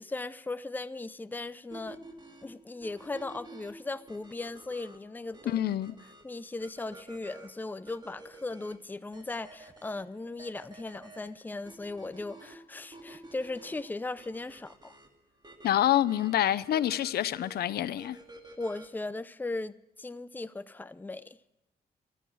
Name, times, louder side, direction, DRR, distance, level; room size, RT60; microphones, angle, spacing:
voice 1, 0.0-2.0 2.4-5.6 6.2-15.0 18.6-21.4, left 2 dB, 10° left, 0.5 m, -38 dB
sound 1, 1.7-19.1, right 2 dB, 30° right, 2.2 m, -52 dB
voice 2, 5.5-5.9 15.6-18.2, left 12 dB, 85° left, 0.6 m, -27 dB
13.5 x 13.5 x 6.2 m
cardioid pair, 100°, 16 cm